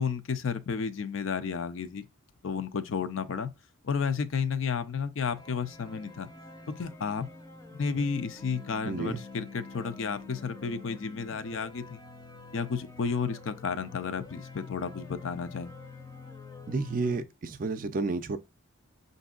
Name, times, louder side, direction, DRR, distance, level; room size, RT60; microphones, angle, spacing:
voice 1, 0.0-2.0 2.4-3.5 3.8-6.3 6.7-7.3 7.7-12.0 12.5-15.7, left 5 dB, 65° left, 0.5 m, -32 dB
sound 1, 5.4-17.2, left 3 dB, 20° left, 0.6 m, -47 dB
voice 2, 8.8-9.2 16.7-18.4, right 3 dB, 40° right, 0.4 m, -31 dB
5.9 x 2.6 x 2.4 m
head